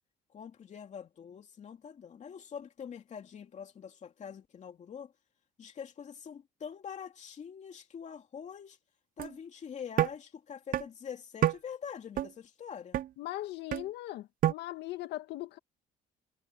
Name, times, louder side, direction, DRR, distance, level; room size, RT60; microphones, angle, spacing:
voice 1, 0.3-5.1 5.6-8.8 9.2-13.0, left 7 dB, 45° left, 2.6 m, -45 dB
sound 1, 9.2-9.3 10.0-10.1 10.7-10.8 11.4-11.6 12.2-12.3 12.9-13.1 13.7-13.9 14.4-14.5, right 13 dB, 55° right, 0.5 m, -27 dB
voice 2, 13.2-15.6, left 16 dB, 80° left, 2.0 m, -39 dB
cardioid pair, 110°, 17 cm